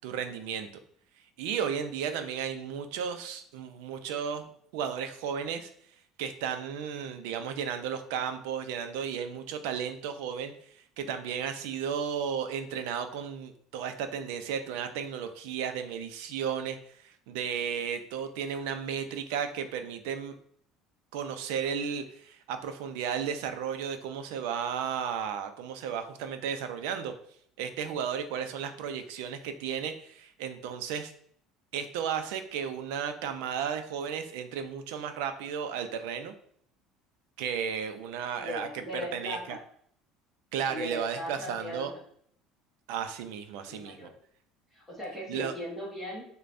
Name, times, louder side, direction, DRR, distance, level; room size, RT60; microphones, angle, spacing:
voice 1, 0.0-0.7 1.4-5.7 6.2-10.5 11.0-16.8 17.0-20.3 21.1-27.1 27.6-31.1 31.7-36.3 37.4-38.7 38.9-39.6 40.5-41.9 42.9-44.1 45.3-45.5, right 7 dB, 85° right, 8 dB, 0.5 m, -34 dB
voice 2, 38.4-39.6 40.7-42.0 43.6-44.1 44.7-46.2, left 1 dB, ahead, -6 dB, 1.0 m, -38 dB
6.5 x 2.2 x 2.6 m, 0.63 s
cardioid pair, 170°, 0 cm